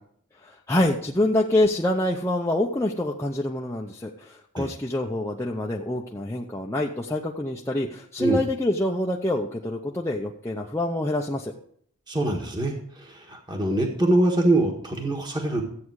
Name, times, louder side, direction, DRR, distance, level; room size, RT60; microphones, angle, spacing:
voice 1, 0.4-11.5, left 1 dB, 10° left, -2 dB, 0.7 m, -26 dB
voice 2, 12.1-15.6, right 2 dB, 20° right, 2 dB, 1.5 m, -24 dB
13.5 x 8.5 x 4.8 m, 0.63 s
head